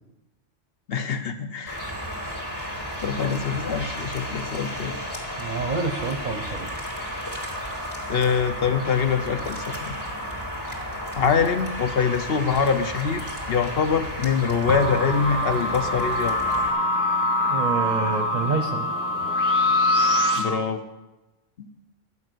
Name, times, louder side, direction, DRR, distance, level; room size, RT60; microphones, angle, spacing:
voice 1, 0.9-1.8 2.5-5.0 8.1-10.0 11.1-16.4 20.4-20.8 21.6-21.7, left 6 dB, 55° left, 8 dB, 0.9 m, -24 dB
sound 1, 1.7-16.7, equal, 15° left, 2.4 m, -33 dB
voice 2, 5.4-6.7 17.4-18.9, right 4 dB, 45° right, 5 dB, 0.8 m, -27 dB
sound 2, 14.7-20.4, left 1 dB, 15° right, 1.3 m, -23 dB
11.5 x 5.5 x 7.8 m, 1.0 s
omnidirectional pair, 1.2 m